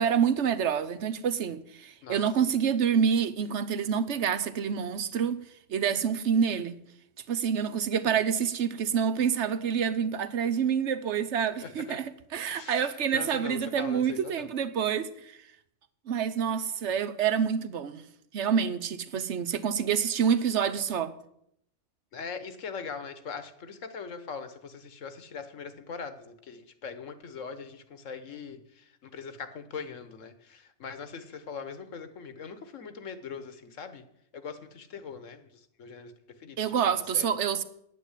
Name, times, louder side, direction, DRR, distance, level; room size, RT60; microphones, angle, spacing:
voice 1, 0.0-5.4 5.7-6.8 7.3-12.0 12.3-15.4 16.1-18.0 18.3-21.1 36.6-37.6, right 7 dB, 70° right, 1.1 m, -27 dB
voice 2, 11.6-12.0 12.5-14.5 19.1-19.2 22.1-34.0 34.3-36.1 36.4-37.3, left 5 dB, 85° left, 1.5 m, -41 dB
9.2 x 9.1 x 8.1 m
omnidirectional pair, 1.3 m